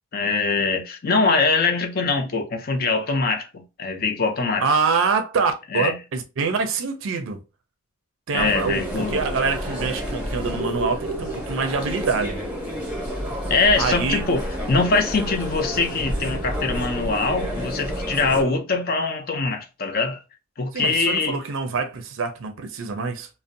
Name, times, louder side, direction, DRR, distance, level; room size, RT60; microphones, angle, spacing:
voice 1, 0.1-4.7 5.7-6.0 8.3-9.2 13.5-14.4 14.7-20.2 20.6-21.4, left 3 dB, 45° left, 0.5 m, -23 dB
voice 2, 4.6-7.4 8.3-12.4 13.8-14.2 20.7-23.3, right 5 dB, 65° right, 0.4 m, -25 dB
sound 1, 8.4-18.4, equal, 5° right, 0.7 m, -29 dB
2.5 x 2.0 x 2.5 m
head